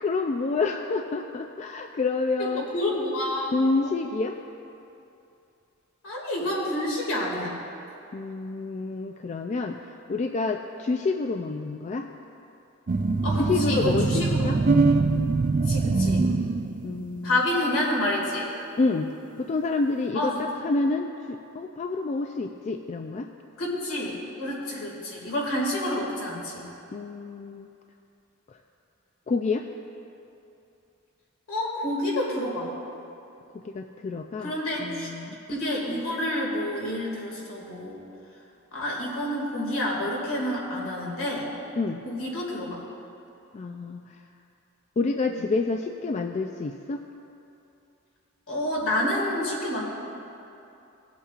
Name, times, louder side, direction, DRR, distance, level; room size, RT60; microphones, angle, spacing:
voice 1, 0.0-2.7 3.5-4.4 8.1-12.1 13.3-14.6 16.8-17.4 18.8-19.1 19.4-23.3 26.9-27.7 28.5-28.6 29.3-29.7 33.5-34.5 34.8-35.4 41.8-42.0 43.5-44.2 45.0-47.0, left 3 dB, 35° left, 4 dB, 0.3 m, -28 dB
voice 2, 2.4-3.9 6.0-7.6 13.2-14.4 15.6-16.2 17.2-18.5 20.1-20.5 23.6-26.7 31.5-32.7 34.4-35.1 35.5-38.0 38.7-41.5 42.0-42.8 45.3-45.4 48.5-49.8, left 1 dB, 70° left, -3 dB, 2.3 m, -29 dB
sound 1, 12.9-17.1, right 3 dB, 40° right, 0.4 m, -23 dB
17.5 x 8.2 x 2.5 m, 2.7 s
head